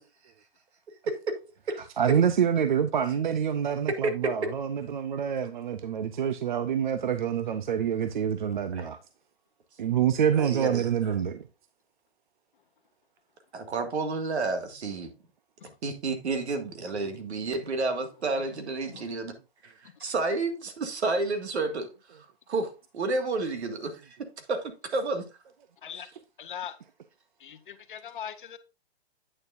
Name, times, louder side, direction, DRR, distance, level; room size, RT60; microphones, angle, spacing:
voice 1, 2.0-9.0 9.8-11.5, right 8 dB, 45° right, 0.5 m, -26 dB
voice 2, 10.4-10.9 13.5-15.1 15.8-19.3 19.6-24.2 24.5-25.2, right 3 dB, 80° right, 2.0 m, -31 dB
voice 3, 26.4-26.8 27.4-28.6, left 9 dB, 50° left, 0.8 m, -40 dB
8.7 x 6.8 x 2.5 m
hypercardioid pair, 175°, 33 cm